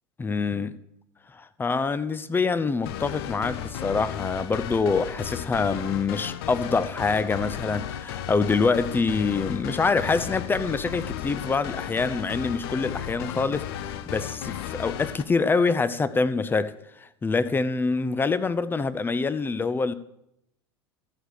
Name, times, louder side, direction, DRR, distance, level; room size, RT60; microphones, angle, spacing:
voice 1, 0.2-0.8 1.3-19.9, left 4 dB, 15° left, 0.6 m, -25 dB
sound 1, 2.8-15.2, left 10 dB, 65° left, 0.6 m, -34 dB
13.5 x 4.9 x 6.5 m
hypercardioid pair, 90°, 14 cm